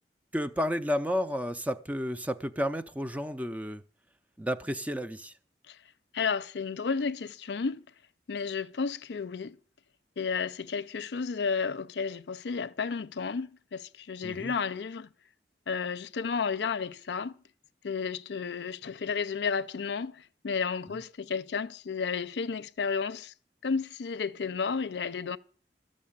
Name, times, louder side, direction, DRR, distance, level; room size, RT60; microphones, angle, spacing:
voice 1, 0.3-3.8 4.4-5.3 14.2-14.6 20.9-21.0, equal, 10° right, 0.5 m, -31 dB
voice 2, 6.1-7.8 8.3-9.6 10.2-15.1 15.7-17.3 17.8-23.3 23.6-25.4, left 5 dB, 80° left, 0.5 m, -32 dB
13.5 x 6.5 x 8.6 m
head